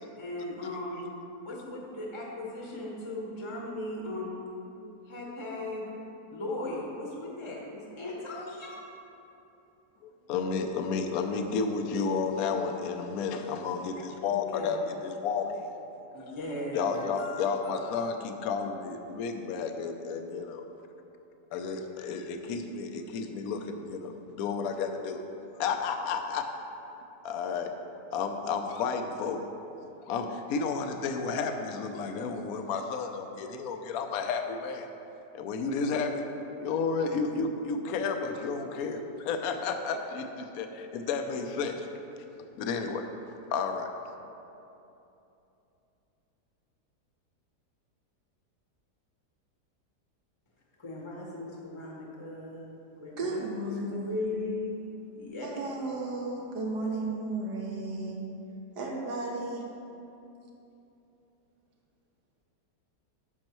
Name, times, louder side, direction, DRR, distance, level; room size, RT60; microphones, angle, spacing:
voice 1, 0.2-1.0 1.4-4.4 5.1-5.9 6.3-8.8 14.3-14.7 16.1-18.1 50.8-52.7 53.0-54.8 55.1-55.7, left 2 dB, 20° left, -3 dB, 0.8 m, -38 dB
voice 2, 10.0-15.7 16.7-20.6 21.5-25.2 25.6-26.5 27.2-27.7 28.1-29.5 30.0-34.9 35.3-36.3 36.6-41.9 42.6-43.1 43.5-43.9, left 5 dB, 70° left, 6 dB, 1.0 m, -32 dB
voice 3, 53.2-54.2 55.4-58.2 58.8-59.7, right 2 dB, 75° right, -1 dB, 1.7 m, -34 dB
10.5 x 6.4 x 3.0 m, 2.9 s
omnidirectional pair, 1.8 m